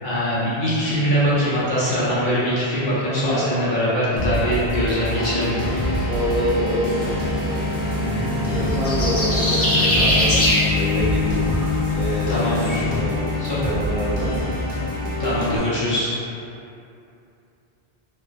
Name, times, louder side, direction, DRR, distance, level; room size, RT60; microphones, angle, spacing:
voice 1, 0.0-5.5 8.0-8.3 12.3-12.8 13.4-13.6 15.2-16.1, equal, 55° left, -10 dB, 0.8 m, -22 dB
sound 1, 4.2-15.6, left 1 dB, 75° left, 1.0 m, -26 dB
sound 2, 5.1-14.8, left 4 dB, 25° right, 0.7 m, -28 dB
voice 2, 6.0-7.1 8.5-10.5 10.7-11.4 11.9-13.2 13.5-14.5 15.2-15.5, equal, 60° right, -9 dB, 0.9 m, -27 dB
sound 3, 7.6-12.7, equal, 20° left, 0.4 m, -24 dB
3.1 x 2.3 x 2.5 m, 2.7 s
omnidirectional pair, 1.1 m